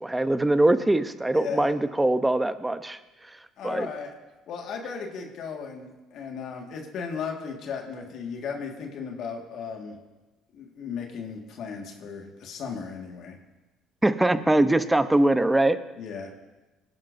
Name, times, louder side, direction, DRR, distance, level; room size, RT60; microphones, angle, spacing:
voice 1, 0.0-3.0 3.6-3.9 14.0-15.8, right 1 dB, 10° right, 12 dB, 0.7 m, -22 dB
voice 2, 1.3-1.7 3.6-4.1 4.5-10.0 10.5-13.4 16.0-16.3, left 6 dB, 65° left, 2 dB, 1.7 m, -36 dB
19.5 x 11.0 x 2.6 m, 1.1 s
supercardioid pair, 75°, 0 cm